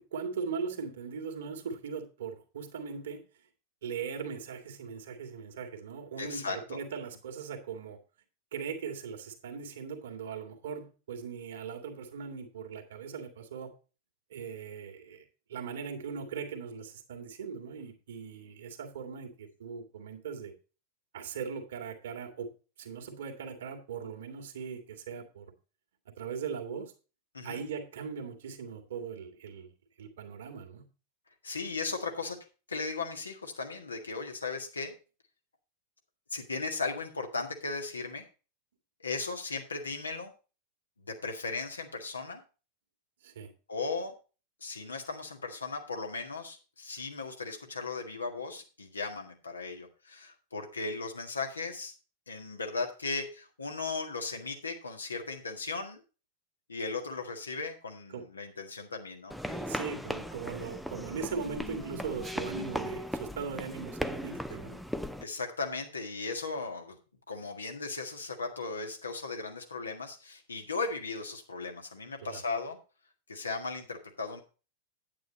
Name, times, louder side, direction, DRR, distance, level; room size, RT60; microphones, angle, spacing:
voice 1, 0.0-3.2 3.8-8.0 8.5-13.7 14.3-15.2 15.5-20.5 21.1-22.5 22.8-25.5 26.2-26.9 27.4-29.7 30.0-30.9 43.2-43.5 58.1-58.2 59.7-64.8 72.2-72.4, right 6 dB, 60° right, 2.1 m, -39 dB
voice 2, 6.2-6.8 27.3-27.6 31.4-32.4 32.7-34.9 36.3-38.2 39.0-40.3 41.0-42.4 43.7-44.1 44.6-51.9 52.3-56.0 56.7-59.8 65.2-67.0 67.3-72.8 73.3-74.4, left 4 dB, 75° left, 1.8 m, -37 dB
sound 1, 59.3-65.2, equal, ahead, 0.6 m, -37 dB
9.4 x 8.8 x 3.9 m
figure-of-eight pair, 90°, 0 cm